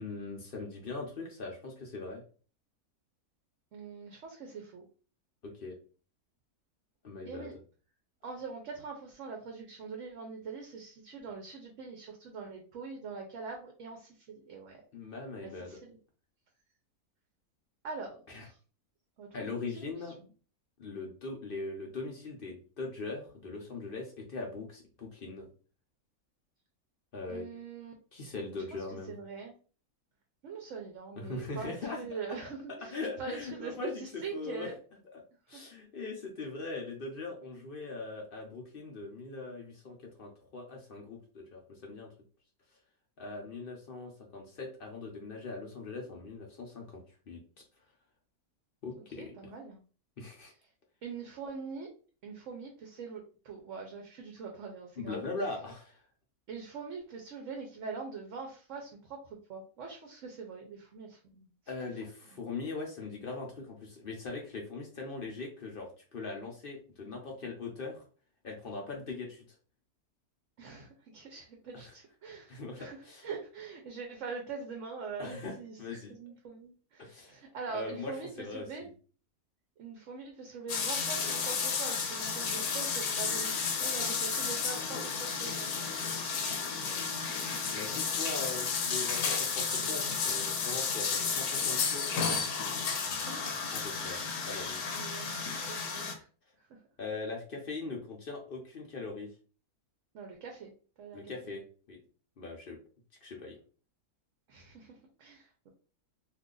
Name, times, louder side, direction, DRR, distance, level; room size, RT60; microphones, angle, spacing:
voice 1, 0.0-2.2 5.4-5.8 7.0-7.5 14.9-15.8 18.3-18.5 19.3-20.1 20.8-25.5 27.1-27.4 28.1-29.2 31.2-32.0 32.9-34.0 34.3-34.7 35.1-35.2 35.5-42.1 43.2-47.0 47.3-47.6 48.8-49.3 50.2-50.5 55.0-56.0 61.7-68.0 68.4-69.4 71.7-71.9 72.5-73.3 75.2-76.1 77.0-77.4 77.7-78.9 87.6-92.1 93.7-94.9 97.0-99.3 101.1-102.0 102.4-102.8 103.2-103.6, left 3 dB, 45° left, 1 dB, 0.8 m, -41 dB
voice 2, 3.7-4.8 7.2-7.6 8.2-14.8 15.4-16.0 17.8-18.6 19.2-19.9 20.2-20.3 27.3-27.9 29.1-29.5 30.4-34.8 35.5-35.6 49.2-49.8 51.0-51.9 52.2-55.3 56.5-59.2 59.5-61.5 70.6-78.9 79.8-87.2 93.0-93.6 94.1-94.4 94.9-96.3 96.7-96.8 100.1-100.7 101.0-101.5 104.5-105.7, right 5 dB, 60° right, 2 dB, 1.0 m, -43 dB
sound 1, 80.7-96.1, left 5 dB, 80° left, 1.2 m, -32 dB
2.8 x 2.4 x 3.7 m, 0.38 s
omnidirectional pair, 1.6 m